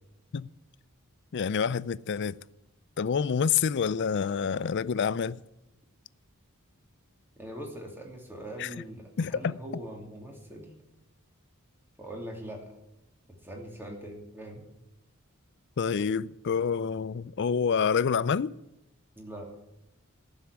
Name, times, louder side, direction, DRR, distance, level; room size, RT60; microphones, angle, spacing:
voice 1, 1.3-2.3 3.0-5.4 8.6-8.7 9.2-9.6 15.8-18.5, left 6 dB, 55° left, 0.4 m, -27 dB
voice 2, 7.4-10.7 12.0-12.7 13.4-14.6 19.1-19.5, right 1 dB, 10° right, 2.9 m, -42 dB
14.0 x 7.2 x 9.9 m
head